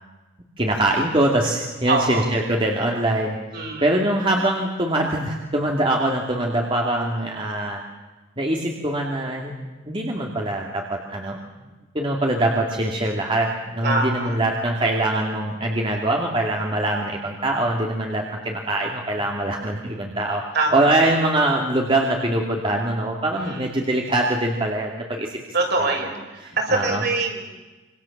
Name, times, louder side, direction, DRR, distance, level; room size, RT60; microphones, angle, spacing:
voice 1, 0.6-3.4 3.8-7.8 8.4-9.5 9.9-11.4 11.9-20.4 20.7-25.4 25.8-26.0 26.4-27.0, right 1 dB, 25° right, 0 dB, 2.7 m, -23 dB
voice 2, 1.9-2.3 3.5-3.9 13.8-14.4 20.5-20.9 23.4-23.7 25.5-27.4, right 3 dB, 55° right, 1 dB, 6.5 m, -24 dB
27.0 x 25.5 x 7.4 m, 1.2 s
head